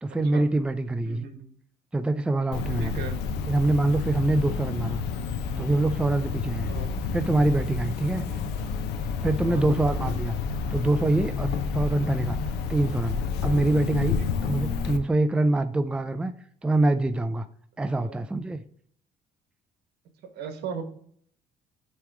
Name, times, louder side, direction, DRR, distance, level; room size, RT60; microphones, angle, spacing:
voice 1, 0.0-1.2 1.9-3.0 3.5-5.0 5.6-6.7 7.1-8.2 9.2-10.4 10.7-12.4 12.7-13.2 13.4-14.2 14.4-16.3 16.6-17.5 17.8-18.6, right 2 dB, 5° right, 10 dB, 0.4 m, -25 dB
voice 2, 1.0-1.5 2.8-3.2 6.7-6.9 8.3-8.4 9.5-9.7 14.2-14.3 18.0-18.2 20.3-20.8, right 6 dB, 75° right, 7 dB, 1.2 m, -37 dB
Cricket, 2.5-15.0, left 5 dB, 85° left, 0.7 m, -30 dB
sound 1, 5.5-7.7 8.0-8.1 8.6-9.3 9.7-11.6 11.9-12.1, right 2 dB, 50° right, 2.3 m, -49 dB
8.5 x 3.1 x 4.7 m, 0.62 s
cardioid pair, 110°, 17 cm